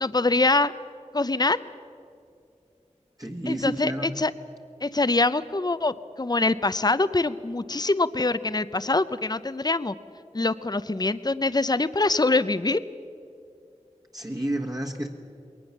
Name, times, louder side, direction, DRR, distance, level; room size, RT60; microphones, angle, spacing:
voice 1, 0.0-0.7 1.1-1.6 3.5-4.3 4.8-9.9 10.3-12.8, left 3 dB, 35° left, 14 dB, 0.6 m, -24 dB
voice 2, 3.2-4.1 14.1-15.1, right 1 dB, 30° right, 0 dB, 1.6 m, -30 dB
21.5 x 19.0 x 7.2 m, 2.5 s
wide cardioid pair, 40°, 13 cm